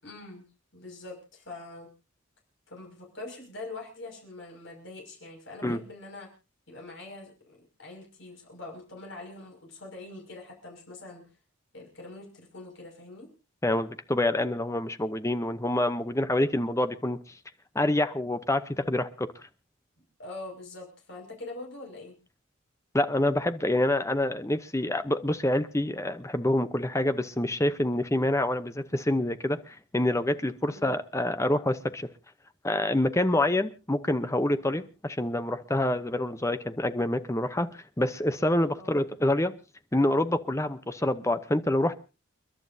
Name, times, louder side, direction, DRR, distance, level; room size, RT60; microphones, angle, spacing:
voice 1, 0.0-0.4 0.7-1.9 2.7-6.3 6.7-11.3 11.7-13.3 20.2-22.1 30.6-30.8 38.8-39.1, left 2 dB, 60° left, 1 dB, 6.1 m, -44 dB
voice 2, 13.6-17.2 17.7-19.3 22.9-32.1 32.6-39.5 39.9-42.0, left 1 dB, 15° left, 10 dB, 0.7 m, -27 dB
30.0 x 11.5 x 2.7 m, 0.32 s
head